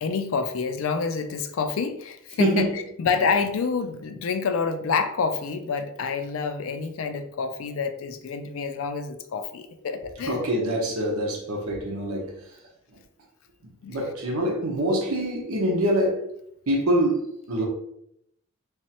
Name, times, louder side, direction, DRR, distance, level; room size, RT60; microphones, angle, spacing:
voice 1, 0.0-10.4 13.8-14.0, left 5 dB, 70° left, 8 dB, 0.4 m, -28 dB
voice 2, 2.4-2.7 10.3-12.3 13.9-16.3 16.7-17.6, right 1 dB, 80° right, 0 dB, 0.9 m, -25 dB
3.5 x 3.1 x 2.8 m, 0.75 s
head